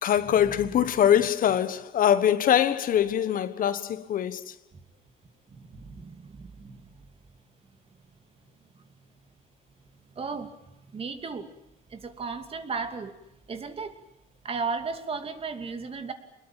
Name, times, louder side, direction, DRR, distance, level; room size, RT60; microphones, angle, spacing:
voice 1, 0.0-4.5, left 10 dB, 55° left, 1.3 m, -23 dB
voice 2, 5.5-7.1 8.7-8.8 10.1-10.6 10.9-11.5 11.9-13.2 13.5-14.0 14.4-16.1, right 4 dB, 35° right, 2.8 m, -35 dB
25.0 x 21.0 x 9.0 m
cardioid pair, 110°, 17 cm